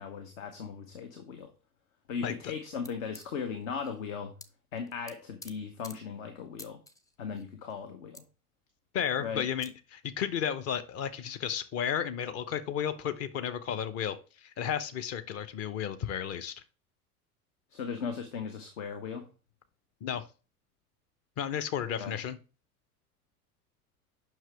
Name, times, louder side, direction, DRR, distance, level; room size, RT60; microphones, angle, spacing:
voice 1, 0.0-1.5 2.1-4.3 4.7-6.8 7.2-8.2 9.2-9.5 17.7-19.3 22.0-22.2, left 6 dB, 60° left, 1.1 m, -37 dB
sound 1, 2.8-2.9 3.1-4.1 4.4-4.5 4.8-5.5 5.8-5.9 6.6-7.4 7.7-7.8 8.1-8.2 9.2-9.3 9.6-9.7, left 2 dB, 10° left, 0.5 m, -49 dB
voice 2, 8.9-14.2 14.4-16.5 20.0-20.2 21.4-22.4, left 8 dB, 35° left, 0.8 m, -33 dB
7.5 x 5.8 x 3.4 m
figure-of-eight pair, 75°, 45 cm